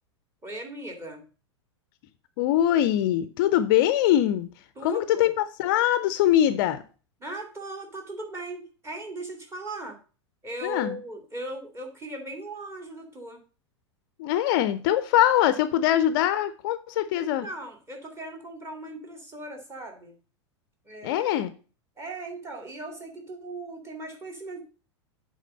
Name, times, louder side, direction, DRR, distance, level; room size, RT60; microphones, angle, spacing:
voice 1, 0.4-1.2 4.8-5.3 7.2-10.0 10.4-13.4 17.1-20.2 20.8-21.3 22.0-24.6, right 1 dB, 15° right, 2 dB, 2.4 m, -38 dB
voice 2, 2.4-4.5 4.8-6.8 10.6-11.0 14.2-17.5 21.0-21.5, left 12 dB, 45° left, 12 dB, 0.6 m, -23 dB
8.3 x 3.8 x 6.5 m, 0.37 s
figure-of-eight pair, 90°, 15 cm